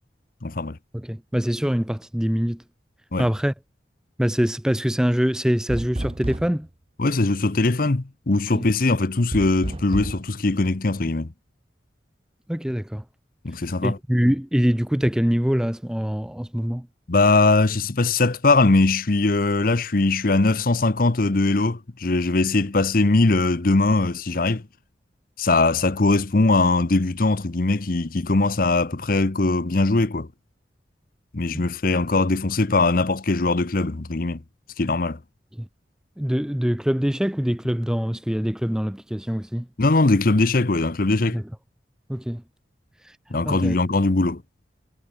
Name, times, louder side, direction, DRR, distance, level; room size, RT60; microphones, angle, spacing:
voice 1, 0.4-0.8 3.1-3.3 7.0-11.3 13.4-14.0 17.1-24.6 25.4-30.3 31.3-34.4 34.8-35.2 39.8-41.4 43.3-44.4, left 2 dB, 50° left, 0.9 m, -21 dB
voice 2, 0.9-2.6 3.2-3.5 4.2-6.7 8.5-8.7 12.5-13.0 13.8-16.9 31.5-31.7 35.6-35.7 36.2-39.7 41.3-41.4 42.1-42.4 43.0-43.1 43.5-43.8, equal, 5° right, 0.4 m, -24 dB
sound 1, 5.7-6.7 9.3-10.2, right 1 dB, 30° right, 1.1 m, -30 dB
head